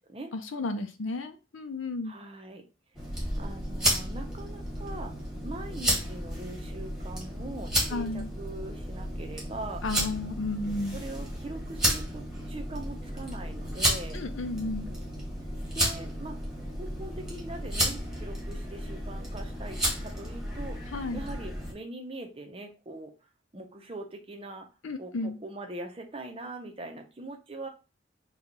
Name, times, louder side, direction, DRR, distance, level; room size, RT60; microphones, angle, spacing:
voice 1, 0.3-2.1 7.9-8.3 9.8-11.0 14.1-14.9 20.9-21.2 24.8-25.4, left 2 dB, 75° left, 8 dB, 0.6 m, -33 dB
voice 2, 2.0-2.7 3.4-5.1 5.4-9.8 10.9-14.2 15.7-16.5 16.8-23.1 23.5-24.7 25.0-27.7, right 2 dB, 25° right, 4 dB, 0.6 m, -42 dB
sound 1, 2.9-21.7, equal, 5° right, 1.2 m, -32 dB
4.4 x 2.3 x 3.9 m, 0.31 s
head